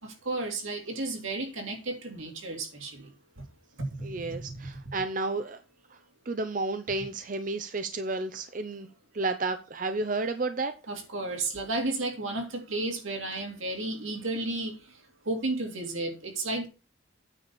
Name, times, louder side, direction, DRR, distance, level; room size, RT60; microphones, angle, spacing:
voice 1, 0.0-3.1 3.8-4.1 10.9-16.7, right 2 dB, 90° right, 2.7 m, -33 dB
voice 2, 4.0-5.6 6.3-8.9 9.1-10.7, right 3 dB, 40° right, 0.6 m, -31 dB
9.2 x 4.2 x 7.0 m
head